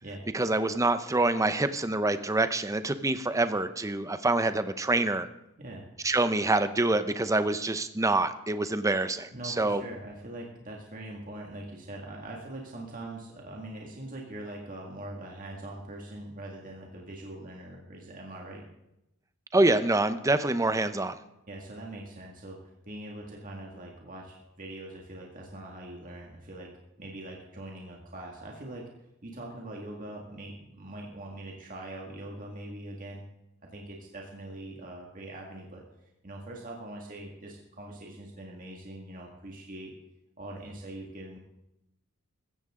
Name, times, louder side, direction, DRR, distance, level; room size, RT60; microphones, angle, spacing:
voice 1, 0.3-5.3 6.0-9.8 19.5-21.2, right 2 dB, 15° right, 11 dB, 0.6 m, -26 dB
voice 2, 9.3-18.6 21.5-28.9 29.2-33.2 33.7-35.8 36.2-39.9 40.4-41.4, right 1 dB, 35° right, -1 dB, 2.0 m, -42 dB
15.5 x 14.5 x 3.7 m, 0.86 s
head